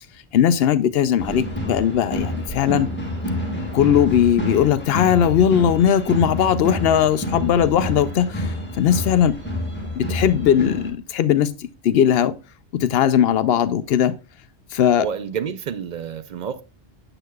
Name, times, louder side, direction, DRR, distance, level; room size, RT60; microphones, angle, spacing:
voice 1, 0.3-2.9 3.7-9.4 10.0-12.3 12.7-14.1 14.7-15.1, left 9 dB, 65° left, 0.8 m, -19 dB
sound 1, 1.2-10.9, left 1 dB, 10° left, 1.6 m, -28 dB
voice 2, 15.0-16.6, right 8 dB, 55° right, 0.5 m, -29 dB
7.7 x 6.5 x 2.2 m
omnidirectional pair, 1.1 m